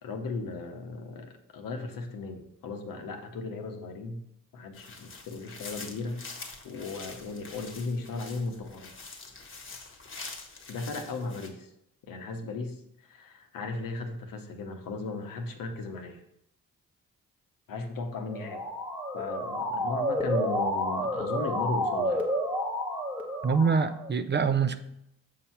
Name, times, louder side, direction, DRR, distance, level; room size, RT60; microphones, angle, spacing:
voice 1, 0.0-4.2 4.5-6.2 6.6-8.9 10.7-11.7 12.1-16.2 17.7-18.6 19.1-22.2, left 3 dB, 85° left, 5 dB, 1.0 m, -36 dB
sound 1, 4.7-11.5, left 4 dB, 40° left, 1.1 m, -45 dB
Motor vehicle (road) / Siren, 18.2-24.1, equal, 5° right, 0.9 m, -30 dB
voice 2, 23.4-24.8, right 5 dB, 35° right, 11 dB, 0.5 m, -25 dB
6.7 x 2.9 x 5.7 m, 0.78 s
cardioid pair, 80°, 33 cm